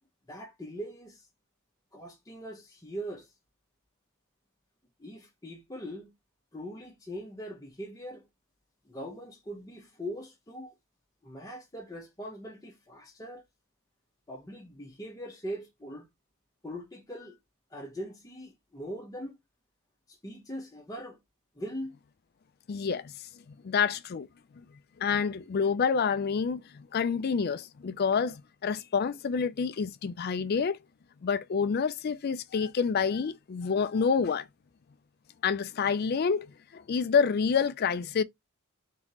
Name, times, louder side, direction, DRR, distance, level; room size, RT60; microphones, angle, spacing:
voice 1, 0.3-1.3 1.9-3.3 5.0-6.1 6.5-8.2 8.8-10.8 11.2-13.4 14.3-16.1 16.6-17.4 17.7-19.4 20.1-21.2 21.5-21.9, equal, 15° left, 0.8 m, -41 dB
voice 2, 22.7-23.1 23.6-24.3 25.0-30.8 31.2-34.4 35.4-36.5 36.7-38.2, left 6 dB, 45° left, 0.3 m, -28 dB
3.7 x 3.5 x 2.9 m
head